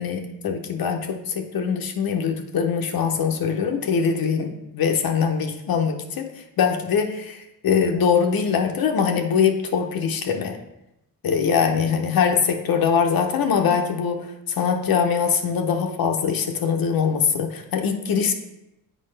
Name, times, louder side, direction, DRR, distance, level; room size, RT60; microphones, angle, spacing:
voice 1, 0.0-6.3 6.6-7.4 7.6-10.6 11.2-14.2 14.6-18.3, left 6 dB, 70° left, 4 dB, 0.8 m, -22 dB
7.6 x 4.9 x 3.3 m, 0.88 s
cardioid pair, 110°, 37 cm